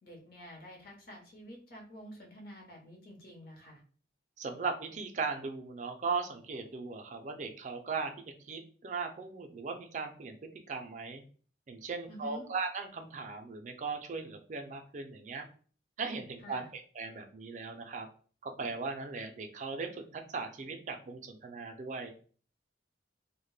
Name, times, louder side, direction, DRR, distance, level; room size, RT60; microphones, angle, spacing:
voice 1, 0.0-3.8 12.1-12.4 16.4-16.7, equal, 50° left, 0 dB, 0.8 m, -49 dB
voice 2, 4.4-11.2 11.7-15.5 16.0-18.1 18.4-22.1, right 4 dB, 40° right, 5 dB, 0.3 m, -38 dB
2.1 x 2.1 x 3.1 m, 0.42 s
head